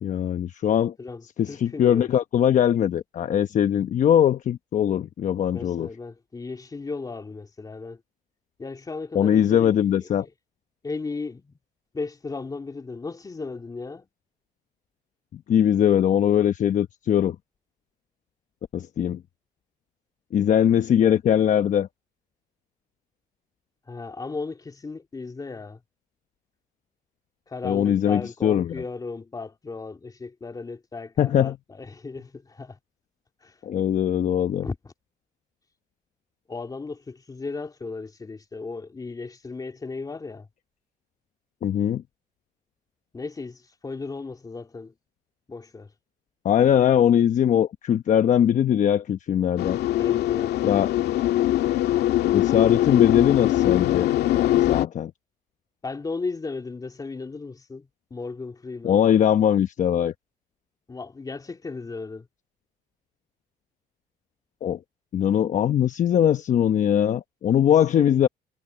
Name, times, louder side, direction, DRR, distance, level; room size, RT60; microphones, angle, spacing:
voice 1, 0.0-0.9 1.4-5.9 9.1-10.3 15.3-17.4 18.7-19.2 20.3-21.9 27.6-28.7 31.2-31.6 33.6-34.7 41.6-42.0 46.4-49.8 50.6-50.9 52.3-55.1 58.8-60.1 64.6-64.8 65.1-68.3, left 9 dB, 50° left, 1.0 m, -21 dB
voice 2, 1.0-2.1 5.5-8.0 8.6-10.3 10.8-11.6 11.9-14.1 23.9-25.8 27.5-32.8 33.4-33.6 34.6-34.9 36.5-40.5 43.1-44.9 45.5-45.9 50.0-50.6 55.8-59.1 60.9-62.3, left 4 dB, 20° left, 3.0 m, -35 dB
sound 1, 49.6-54.9, left 14 dB, 75° left, 2.0 m, -22 dB
cardioid pair, 110°, 17 cm